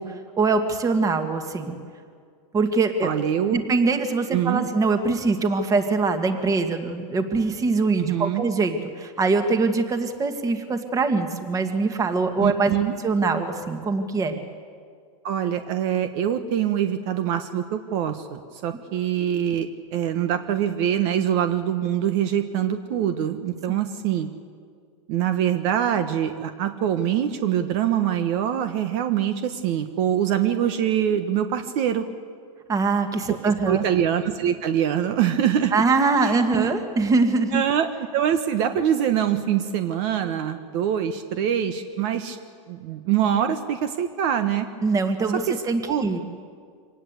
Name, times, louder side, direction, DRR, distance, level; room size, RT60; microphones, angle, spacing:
voice 1, 0.0-1.8 2.5-3.1 3.5-12.7 13.0-14.4 32.7-33.8 35.7-37.6 44.8-46.2, right 3 dB, 20° right, 7 dB, 1.9 m, -23 dB
voice 2, 3.0-3.6 4.3-4.7 8.0-8.4 12.4-12.9 15.2-24.3 25.1-32.0 33.6-35.7 36.2-36.7 37.5-42.4 42.7-44.7 45.5-45.6 45.9-46.1, right 9 dB, 55° right, 8 dB, 1.4 m, -24 dB
25.0 x 18.5 x 8.3 m, 2.1 s
supercardioid pair, 135°, 18 cm